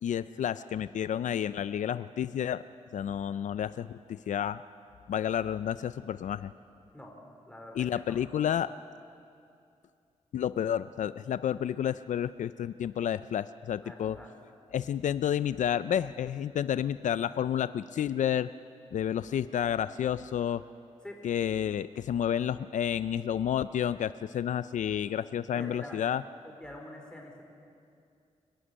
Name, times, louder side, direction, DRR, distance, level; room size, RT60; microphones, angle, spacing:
voice 1, 0.0-2.6 2.9-4.6 5.1-6.5 7.8-8.7 10.3-14.2 14.7-18.5 18.9-20.6 21.2-26.2, left 9 dB, 75° left, 14 dB, 0.4 m, -30 dB
voice 2, 7.5-8.2 13.8-14.3 21.0-21.2 25.5-26.0 26.4-27.4, left 1 dB, 5° left, 1 dB, 4.1 m, -45 dB
26.5 x 11.5 x 9.9 m, 2.5 s
wide cardioid pair, 100°, 13 cm